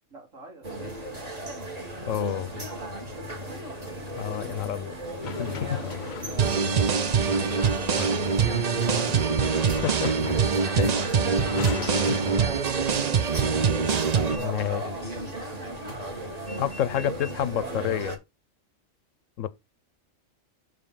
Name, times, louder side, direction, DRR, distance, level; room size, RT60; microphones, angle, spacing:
voice 1, 0.1-1.1 3.2-3.7 5.7-7.8 8.2-8.6 8.9-9.4 12.2-13.8 15.7-16.0, right 2 dB, 80° right, 3.2 m, -43 dB
sound 1, 0.6-18.2, right 1 dB, 30° right, 1.7 m, -35 dB
voice 2, 2.1-2.6 4.2-4.9 5.3-5.8 8.9-9.0 9.8-10.1 10.8-11.1 11.7-11.8 12.1-12.2 14.4-14.8 16.6-18.2 19.4-19.5, left 10 dB, 75° left, 1.0 m, -29 dB
sound 2, 5.2-12.4, left 8 dB, 50° left, 0.6 m, -38 dB
sound 3, 6.4-14.4, right 6 dB, 45° right, 0.5 m, -24 dB
6.1 x 5.2 x 5.6 m
omnidirectional pair, 1.4 m